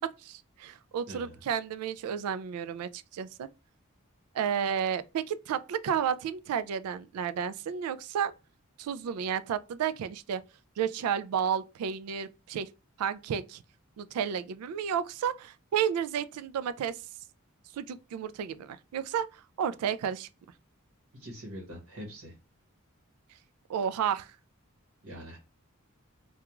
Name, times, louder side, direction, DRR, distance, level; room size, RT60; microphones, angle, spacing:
voice 1, 0.2-3.5 4.3-8.3 8.8-10.4 10.8-12.7 13.0-13.6 14.0-17.0 17.7-20.3 23.7-24.3, right 8 dB, 85° right, 0.3 m, -32 dB
voice 2, 1.1-1.4 21.1-22.3 25.0-25.4, equal, 70° right, 1.0 m, -43 dB
2.3 x 2.3 x 2.9 m
head